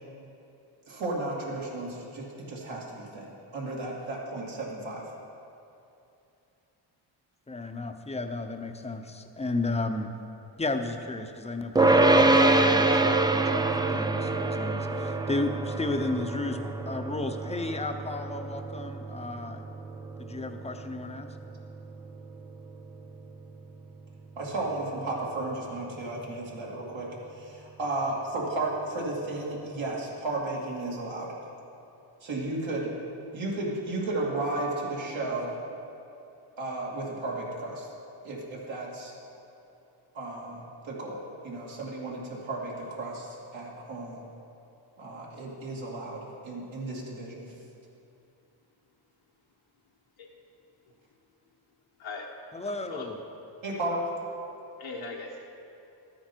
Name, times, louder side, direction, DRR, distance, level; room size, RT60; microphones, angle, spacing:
voice 1, 0.9-5.0 24.4-31.3 32.2-32.9 33.3-35.5 36.6-37.9 38.2-39.1 40.1-44.2 45.0-47.5 53.6-54.0, right 2 dB, 75° right, -4 dB, 2.7 m, -34 dB
voice 2, 7.5-10.1 10.6-19.6 20.2-21.3 52.5-53.2, left 2 dB, 15° left, 6 dB, 0.7 m, -33 dB
sound 1, 11.8-23.1, right 2 dB, 10° right, 0.4 m, -26 dB
voice 3, 52.0-52.3 52.6-53.1 54.8-55.5, left 3 dB, 80° left, -3 dB, 1.2 m, -39 dB
13.5 x 9.6 x 4.5 m, 2.8 s
cardioid pair, 100°, 47 cm